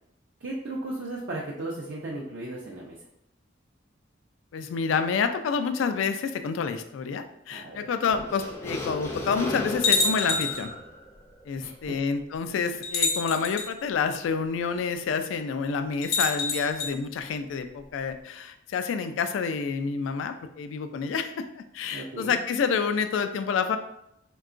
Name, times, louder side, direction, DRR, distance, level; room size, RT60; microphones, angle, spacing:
voice 1, 0.4-3.0 7.5-7.9 11.6-12.0 21.9-22.4, right 2 dB, 65° right, -4 dB, 0.5 m, -35 dB
voice 2, 4.5-10.7 11.5-23.8, left 5 dB, 90° left, 8 dB, 0.3 m, -28 dB
sound 1, 8.1-12.2, left 1 dB, 15° left, 0.4 m, -36 dB
sound 2, 8.2-8.3 9.0-9.1 9.8-10.7 11.8-11.9 12.8-13.7 16.0-16.9, left 4 dB, 55° left, 0.6 m, -26 dB
3.6 x 2.2 x 2.5 m, 0.79 s
head